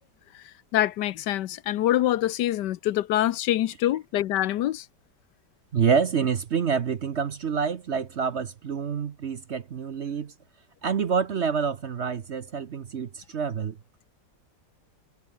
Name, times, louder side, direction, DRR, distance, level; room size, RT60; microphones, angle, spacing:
voice 1, 0.7-4.8, left 13 dB, 80° left, 1.3 m, -25 dB
voice 2, 5.7-10.3 10.8-13.8, right 6 dB, 50° right, 1.0 m, -27 dB
omnidirectional pair, 1.9 m